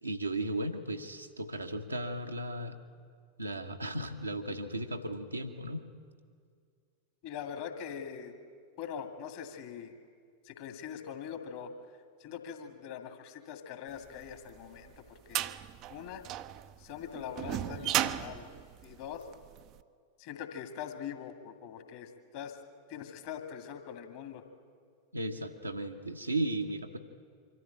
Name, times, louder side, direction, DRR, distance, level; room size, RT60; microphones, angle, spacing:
voice 1, 0.0-2.8 3.4-5.8 25.1-27.0, right 1 dB, 85° right, 3 dB, 1.2 m, -35 dB
voice 2, 7.2-8.3 8.8-9.9 10.4-11.7 12.2-15.4 15.9-16.2 16.8-18.5 18.8-19.3 20.2-22.6 22.9-24.4, left 8 dB, 50° left, 6 dB, 2.1 m, -42 dB
sound 1, 14.3-19.6, right 13 dB, 40° right, 0.6 m, -35 dB
24.0 x 14.0 x 9.0 m, 2.1 s
figure-of-eight pair, 90°, 0 cm